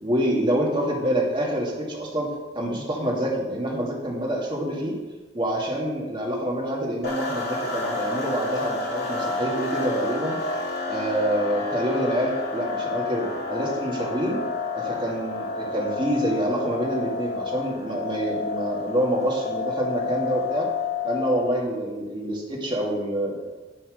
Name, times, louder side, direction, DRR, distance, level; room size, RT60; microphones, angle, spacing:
voice 1, 0.0-5.0 5.3-10.4 10.9-14.4 14.7-20.7 21.0-23.4, right 1 dB, 25° right, -2 dB, 2.3 m, -26 dB
sound 1, 7.0-21.6, left 3 dB, 60° left, 2.6 m, -30 dB
11.0 x 5.8 x 6.4 m, 1.2 s
head